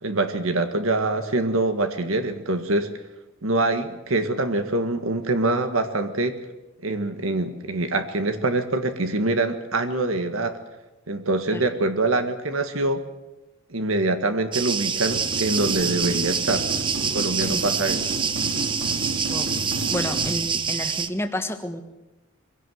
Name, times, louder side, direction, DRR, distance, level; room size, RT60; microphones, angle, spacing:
voice 1, 0.0-2.9 3.4-6.4 6.8-10.6 11.1-13.0 13.7-16.7 17.1-18.0, right 2 dB, 75° right, 8 dB, 1.7 m, -24 dB
sound 1, 14.5-21.1, right 6 dB, 25° right, 0.8 m, -26 dB
sound 2, 15.0-20.4, right 2 dB, 55° right, 4.2 m, -31 dB
voice 2, 19.9-21.8, left 1 dB, 10° left, 7 dB, 1.5 m, -30 dB
23.5 x 16.5 x 7.8 m, 1.0 s
head